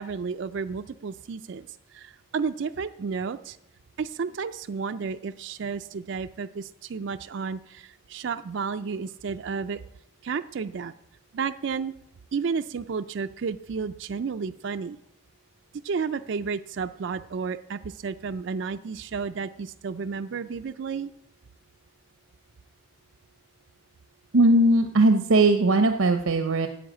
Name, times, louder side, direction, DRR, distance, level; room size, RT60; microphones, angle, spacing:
voice 1, 0.0-3.6 4.0-9.8 10.2-10.9 11.3-11.9 12.3-15.0 15.8-21.1, right 5 dB, 60° right, 10 dB, 0.4 m, -32 dB
voice 2, 24.3-26.7, right 2 dB, 85° right, 7 dB, 0.7 m, -19 dB
10.5 x 7.8 x 8.7 m, 0.79 s
head